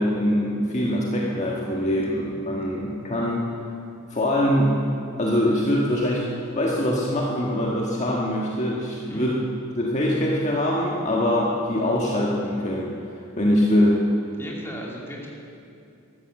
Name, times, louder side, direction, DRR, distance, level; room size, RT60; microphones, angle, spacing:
voice 1, 0.0-3.4 4.1-4.8 5.2-6.2 6.5-9.4 9.8-12.9 13.4-14.0, left 1 dB, 35° left, -3 dB, 1.5 m, -23 dB
voice 2, 14.3-15.3, equal, 10° left, -3 dB, 2.5 m, -36 dB
14.0 x 13.0 x 7.5 m, 2.6 s
head